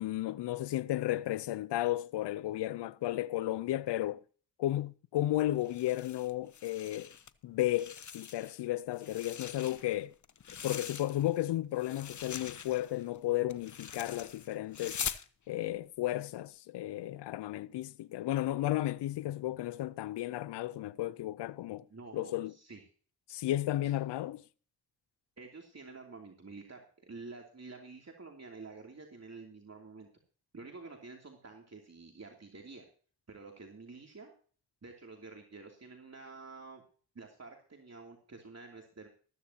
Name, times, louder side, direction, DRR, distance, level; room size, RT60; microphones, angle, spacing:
voice 1, 0.0-4.2 4.6-7.1 7.4-10.1 10.6-15.1 15.5-21.8 22.1-22.5 23.3-24.4, left 14 dB, 85° left, 0.6 m, -33 dB
sound 1, 5.6-7.3 7.6-8.6 8.9-11.4 11.8-15.3, left 7 dB, 45° left, 0.9 m, -43 dB
voice 2, 21.9-22.8 23.8-23.9 25.4-30.1 30.5-32.8 33.3-34.3 34.8-36.8 37.1-39.1, right 3 dB, 40° right, 2.9 m, -49 dB
14.5 x 13.5 x 2.9 m
supercardioid pair, 40°, 41 cm